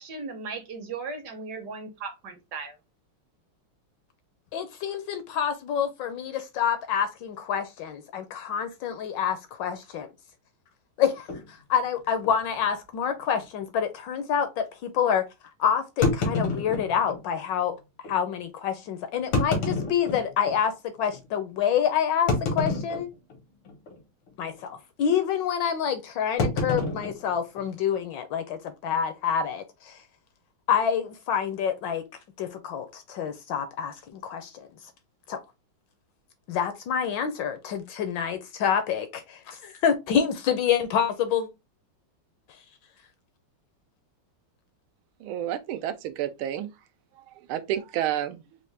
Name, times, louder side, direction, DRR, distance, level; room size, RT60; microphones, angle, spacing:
voice 1, 0.0-2.7, right 4 dB, 65° right, 1.2 m, -37 dB
voice 2, 4.5-10.0 11.0-15.2 15.6-17.8 18.1-20.7 21.0-23.1 24.4-30.0 30.7-32.0 32.4-34.7 35.3-35.4 36.5-41.5, left 8 dB, 75° left, 1.1 m, -27 dB
sound 1, 11.3-11.5 12.2-12.3 12.6-12.7 13.3-13.4 16.0-17.2 18.0-18.1 19.2-20.6 21.1-21.2 22.3-23.4 23.7-24.0 24.3-24.6 26.4-28.0, left 2 dB, 90° left, 2.1 m, -28 dB
voice 3, 45.2-46.7 47.5-48.4, right 11 dB, 90° right, 1.5 m, -30 dB
4.5 x 2.5 x 3.3 m
omnidirectional pair, 2.3 m